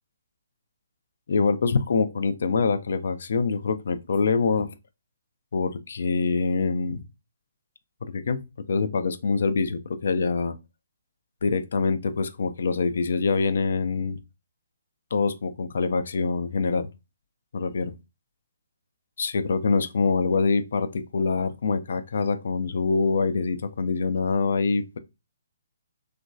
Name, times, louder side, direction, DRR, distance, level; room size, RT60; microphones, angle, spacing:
voice 1, 1.3-4.7 5.5-7.1 8.0-8.4 8.7-10.6 11.4-14.2 15.1-16.9 17.5-17.9 19.2-25.0, left 4 dB, 65° left, 0.4 m, -25 dB
3.0 x 2.5 x 2.3 m
figure-of-eight pair, 135°, 0 cm